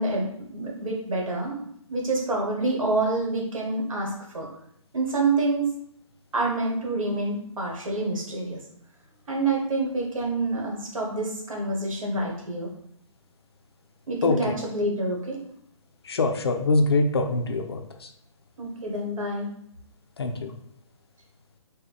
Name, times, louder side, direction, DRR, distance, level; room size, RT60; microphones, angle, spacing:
voice 1, 0.0-1.6 1.9-4.5 4.9-5.7 6.3-8.6 9.3-12.7 14.1-15.4 18.6-19.5, right 2 dB, 75° right, -1 dB, 1.3 m, -27 dB
voice 2, 14.2-14.6 16.0-18.1 20.2-20.5, left 3 dB, 50° left, 6 dB, 0.4 m, -24 dB
3.6 x 2.2 x 3.5 m, 0.70 s
hypercardioid pair, 170°, 17 cm